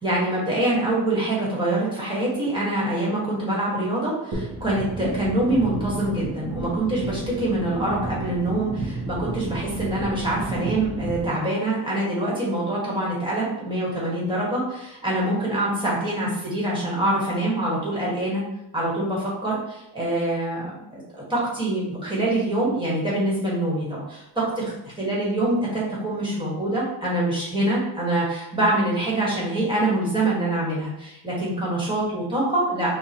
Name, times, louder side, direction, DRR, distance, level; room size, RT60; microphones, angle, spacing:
voice 1, 0.0-18.4 18.7-32.9, right 1 dB, 10° right, -6 dB, 1.5 m, -25 dB
sound 1, 4.3-11.3, right 2 dB, 85° right, 1.3 m, -31 dB
5.6 x 2.5 x 2.9 m, 0.85 s
wide cardioid pair, 165°, 40 cm